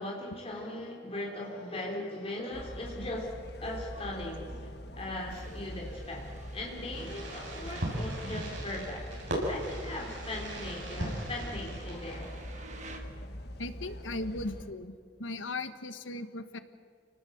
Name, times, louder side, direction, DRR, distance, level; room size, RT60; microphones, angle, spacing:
voice 1, 0.0-12.3, left 1 dB, 30° left, -1 dB, 3.7 m, -39 dB
sound 1, 2.5-14.7, equal, 55° left, 1.7 m, -43 dB
sound 2, 5.3-13.0, right 2 dB, 40° right, 2.2 m, -51 dB
Fireworks, 6.9-12.5, right 1 dB, 75° right, 7.3 m, -38 dB
voice 2, 13.6-14.9 15.2-16.6, left 2 dB, 90° left, 10 dB, 1.5 m, -37 dB
28.5 x 19.0 x 8.0 m, 2.2 s
head